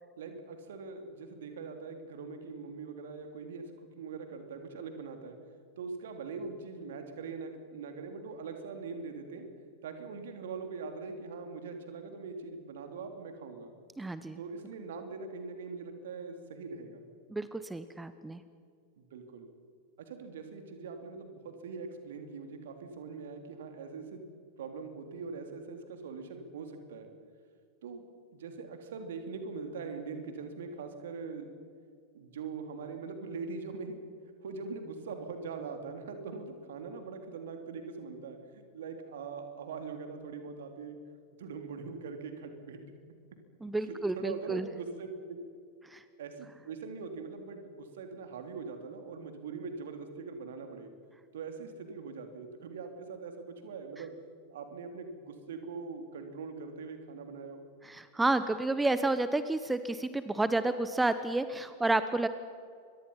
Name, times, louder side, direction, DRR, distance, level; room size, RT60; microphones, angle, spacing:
voice 1, 0.2-5.4 5.8-9.5 9.8-13.7 14.4-17.1 19.0-19.5 20.0-24.3 24.6-27.1 27.8-28.0 28.3-31.5 32.1-34.0 34.4-41.0 41.4-42.8 43.8-45.4 46.2-50.9 51.3-54.1 54.5-57.7, right 4 dB, 60° right, 6 dB, 3.4 m, -42 dB
voice 2, 14.0-14.4 17.3-18.4 43.6-44.7 45.9-46.0 57.8-62.3, right 2 dB, 10° right, 12 dB, 1.0 m, -30 dB
28.0 x 23.5 x 5.7 m, 2.3 s
figure-of-eight pair, 90°, 0 cm